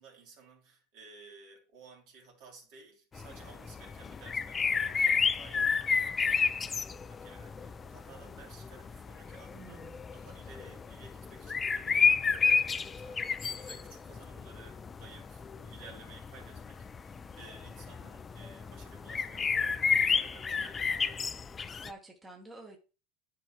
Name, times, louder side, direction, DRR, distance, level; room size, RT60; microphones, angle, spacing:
voice 1, 0.0-21.4, right 4 dB, 60° right, 2.5 m, -55 dB
sound 1, 3.1-21.9, left 5 dB, 20° left, 0.3 m, -31 dB
voice 2, 9.5-10.1 21.8-22.8, right 2 dB, 10° right, 1.1 m, -49 dB
9.9 x 4.5 x 2.9 m
supercardioid pair, 135°, 0 cm